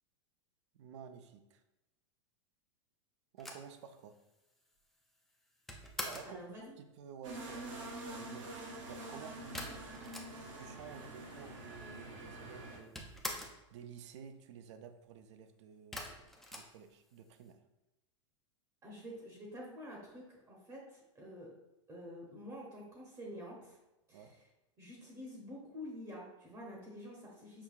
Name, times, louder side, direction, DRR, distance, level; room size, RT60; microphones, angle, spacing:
voice 1, 0.7-1.6 3.3-4.1 6.0-8.5 8.8-9.8 10.5-13.1 13.7-16.2 16.5-17.6 24.1-24.3, right 7 dB, 65° right, 8 dB, 0.4 m, -52 dB
sound 1, 3.4-6.4 9.5-10.7 11.0-11.1 11.3-12.1 12.3-13.7 15.9-17.4, left 1 dB, ahead, 0.3 m, -45 dB
voice 2, 6.2-6.7 18.8-21.5 21.9-23.8 24.1-24.5 24.8-27.6, equal, 20° right, -2 dB, 0.7 m, -48 dB
sound 2, 7.2-12.8, right 2 dB, 80° right, 1.0 m, -46 dB
5.8 x 2.2 x 2.3 m, 0.96 s
hypercardioid pair, 135°, 16 cm